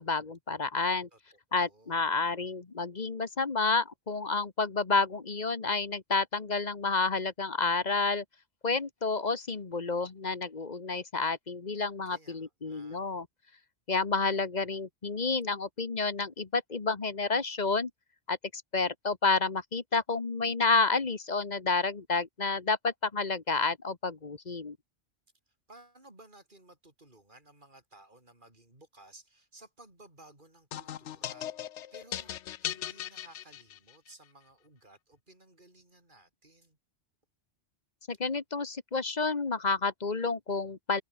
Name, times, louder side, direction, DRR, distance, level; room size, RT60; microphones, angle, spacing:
voice 1, 0.0-1.1 1.5-8.2 8.6-13.3 13.9-17.9 18.3-24.8 38.1-41.0, left 4 dB, 40° left, 1.4 m, -30 dB
voice 2, 1.1-2.1 12.0-13.0 25.5-32.3 32.6-36.8, right 2 dB, 45° right, 6.1 m, -57 dB
sound 1, 30.7-34.1, left 11 dB, 90° left, 1.0 m, -38 dB
open air
omnidirectional pair, 1.2 m